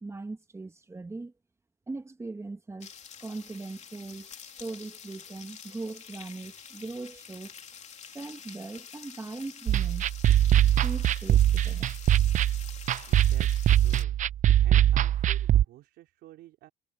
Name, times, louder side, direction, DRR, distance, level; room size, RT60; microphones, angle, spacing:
voice 1, 0.0-1.3 1.9-2.9 3.2-7.5 8.0-10.1 10.8-11.9, right 3 dB, 15° right, 1.5 m, -40 dB
sound 1, 2.8-14.0, left 7 dB, 45° left, 2.9 m, -47 dB
sound 2, 9.7-15.6, right 12 dB, 50° right, 0.5 m, -22 dB
voice 2, 13.0-14.2 14.6-16.7, right 15 dB, 80° right, 4.2 m, -51 dB
cardioid pair, 110°, 17 cm